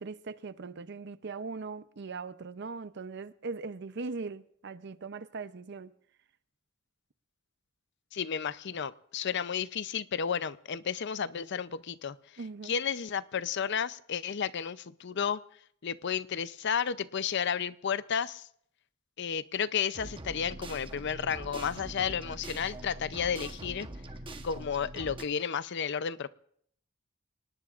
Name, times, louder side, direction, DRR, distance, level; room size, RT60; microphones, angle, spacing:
voice 1, 0.0-5.9 12.4-12.8, right 4 dB, 60° right, 0.6 m, -40 dB
voice 2, 8.1-12.2 12.6-15.4 15.8-18.5 19.2-23.9 24.4-26.3, left 7 dB, 60° left, 0.6 m, -32 dB
sound 1, 19.9-25.2, right 1 dB, 25° right, 1.0 m, -43 dB
28.0 x 19.0 x 2.5 m
head